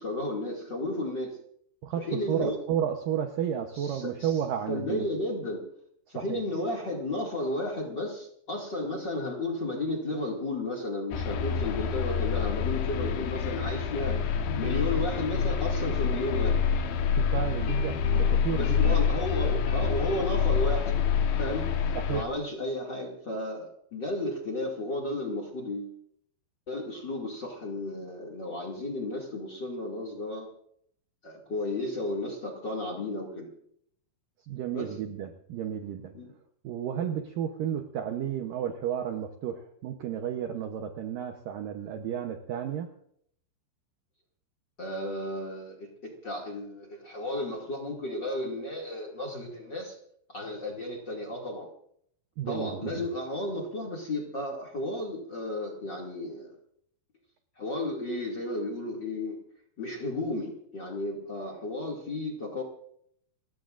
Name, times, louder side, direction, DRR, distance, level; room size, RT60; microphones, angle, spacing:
voice 1, 0.0-1.3 2.0-2.6 3.7-4.4 4.7-5.6 6.1-16.6 18.5-21.0 21.4-21.7 22.1-25.9 26.7-30.5 31.2-33.5 34.7-34.9 36.1-36.3 44.8-50.0 50.3-51.7 52.5-56.5 57.6-59.4 59.8-62.6, left 1 dB, 35° left, 0 dB, 2.1 m, -33 dB
voice 2, 1.8-5.1 6.2-6.4 17.1-19.0 22.0-22.2 34.5-36.1 36.6-42.9 52.4-53.1, right 9 dB, 75° right, 5 dB, 2.1 m, -32 dB
sound 1, 11.1-22.2, left 7 dB, 90° left, 3.7 m, -27 dB
sound 2, 13.0-20.3, left 6 dB, 65° left, 2.2 m, -43 dB
29.5 x 16.0 x 2.5 m, 0.67 s
omnidirectional pair, 5.1 m